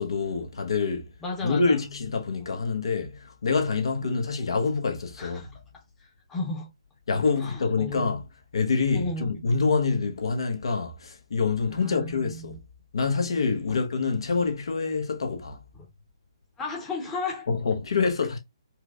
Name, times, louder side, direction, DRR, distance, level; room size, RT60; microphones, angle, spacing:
voice 1, 0.0-1.1 1.4-5.5 7.1-8.2 8.5-12.6 12.9-15.6 17.5-18.4, left 4 dB, 65° left, 1.0 m, -26 dB
voice 2, 1.2-1.9 4.0-4.2 5.2-5.6 6.3-6.7 7.4-8.1 8.9-9.3 11.7-12.6 13.7-13.8 15.7-15.9 16.6-17.5, left 3 dB, 10° left, 0.8 m, -34 dB
4.4 x 2.1 x 2.3 m
figure-of-eight pair, 140°, 3 cm